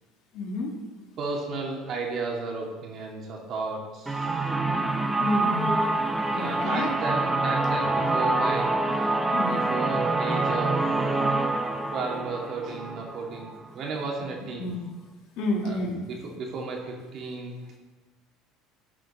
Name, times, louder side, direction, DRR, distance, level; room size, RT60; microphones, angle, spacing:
voice 1, 0.3-0.7 5.2-5.9 6.3-6.9 9.3-9.7 14.6-14.8 15.4-16.1, left 2 dB, 65° left, 2 dB, 1.6 m, -29 dB
voice 2, 1.2-4.3 6.2-11.4 11.9-13.5 13.7-14.7 15.6-17.6, right 3 dB, 55° right, 0 dB, 2.3 m, -34 dB
sound 1, 4.1-13.8, right 2 dB, 15° right, 1.0 m, -26 dB
14.0 x 5.0 x 4.2 m, 1.3 s
supercardioid pair, 85°, 0 cm